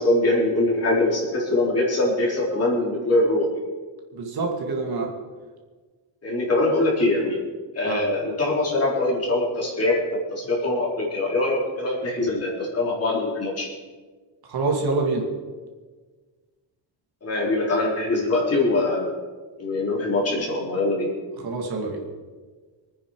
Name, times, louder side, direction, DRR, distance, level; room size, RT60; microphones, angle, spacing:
voice 1, 0.0-3.5 6.2-7.4 7.7-13.7 17.2-19.1 19.6-21.1, left 2 dB, 35° left, -2 dB, 3.8 m, -23 dB
voice 2, 4.1-5.1 7.8-8.0 14.5-15.3 21.4-22.0, right 3 dB, 55° right, 1 dB, 2.6 m, -26 dB
24.5 x 9.7 x 5.0 m, 1.4 s
cardioid pair, 170°, 44 cm